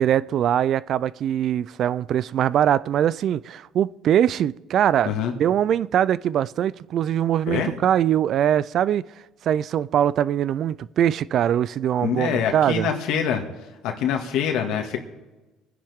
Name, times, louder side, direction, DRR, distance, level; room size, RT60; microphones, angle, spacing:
voice 1, 0.0-5.1 5.4-9.0 9.4-12.9, right 10 dB, 55° right, 0.4 m, -22 dB
voice 2, 12.0-13.5 13.8-15.0, left 8 dB, 75° left, 1.9 m, -25 dB
24.5 x 10.0 x 3.6 m
supercardioid pair, 100°, 0 cm